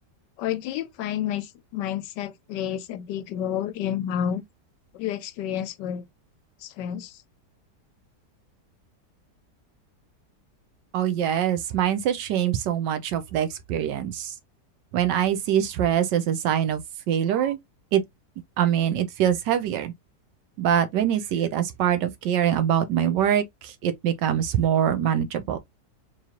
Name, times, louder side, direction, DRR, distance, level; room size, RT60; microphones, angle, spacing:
voice 1, 0.4-4.4 4.9-6.0 6.6-7.1, left 10 dB, 85° left, 1.2 m, -30 dB
voice 2, 10.9-14.3 14.9-16.8 17.1-17.6 17.9-18.0 18.6-19.9 20.6-25.6, right 10 dB, 90° right, 1.4 m, -24 dB
3.7 x 3.1 x 2.7 m
omnidirectional pair, 1.8 m